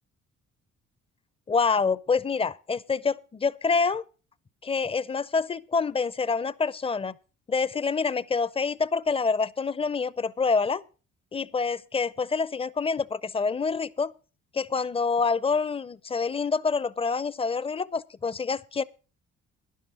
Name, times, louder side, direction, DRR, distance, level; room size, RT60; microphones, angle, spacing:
voice 1, 1.5-4.0 4.6-7.1 7.5-10.8 11.3-14.1 14.5-18.8, left 4 dB, 20° left, 0.5 m, -27 dB
12.0 x 10.5 x 4.9 m
cardioid pair, 90°, 30 cm